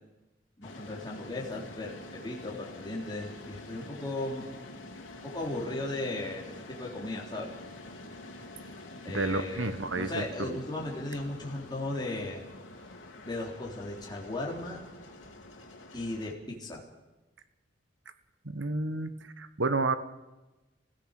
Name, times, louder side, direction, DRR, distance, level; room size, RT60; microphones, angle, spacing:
sound 1, 0.6-16.3, left 2 dB, 85° left, 3.2 m, -47 dB
voice 1, 0.6-4.4 5.2-7.5 9.0-12.4 13.2-14.8 15.9-16.8, left 2 dB, 20° left, -3 dB, 3.7 m, -36 dB
voice 2, 9.1-10.6 18.4-19.9, right 3 dB, 75° right, 12 dB, 1.4 m, -31 dB
26.5 x 16.0 x 6.6 m, 1.1 s
head